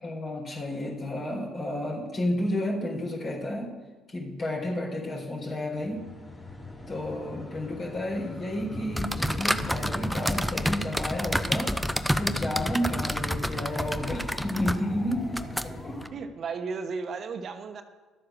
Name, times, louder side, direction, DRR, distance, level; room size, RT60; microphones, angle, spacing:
voice 1, 0.0-3.7 4.1-6.0 6.9-11.7 12.2-16.0, left 1 dB, 45° left, -1 dB, 4.2 m, -31 dB
sound 1, 5.7-16.1, left 2 dB, 20° left, 3.1 m, -41 dB
sound 2, 8.9-16.1, equal, ahead, 0.7 m, -30 dB
voice 2, 16.1-17.8, right 5 dB, 55° right, 7 dB, 1.0 m, -34 dB
12.0 x 7.7 x 6.4 m, 1.3 s
supercardioid pair, 65°, 0 cm